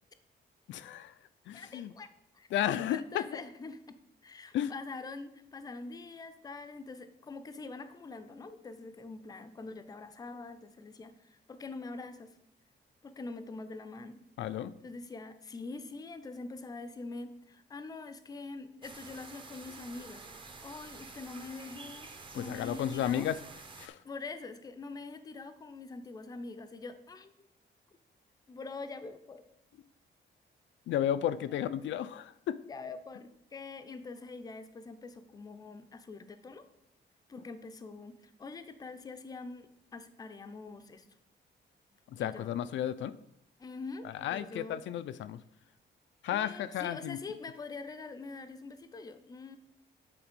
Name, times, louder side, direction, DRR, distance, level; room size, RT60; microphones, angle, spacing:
voice 1, 0.7-1.1 1.5-1.9 2.5-3.2 4.5-4.7 14.4-14.7 22.3-23.4 23.8-24.0 30.9-32.6 42.1-43.1 44.0-45.4 46.2-47.2, left 11 dB, 80° left, 12 dB, 0.4 m, -33 dB
voice 2, 1.5-2.5 2.9-12.3 13.0-14.2 14.8-20.3 20.6-23.3 24.0-27.5 28.5-29.5 32.7-36.6 37.3-41.1 42.2-42.5 43.6-44.8 46.3-49.6, left 3 dB, 20° left, 10 dB, 0.5 m, -44 dB
sound 1, 18.8-23.9, right 3 dB, 25° right, 0.7 m, -49 dB
8.7 x 4.1 x 5.2 m, 0.76 s
wide cardioid pair, 175°, 19 cm